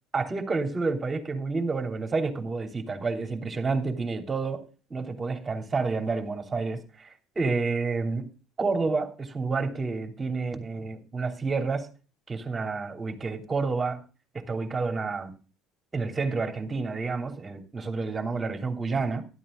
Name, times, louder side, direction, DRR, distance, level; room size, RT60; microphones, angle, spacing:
voice 1, 0.1-4.6 4.9-8.3 8.6-11.9 12.3-14.0 14.3-15.3 15.9-19.3, right 4 dB, 25° right, 3.0 m, -29 dB
12.0 x 12.0 x 3.8 m
hypercardioid pair, 65°, 0 cm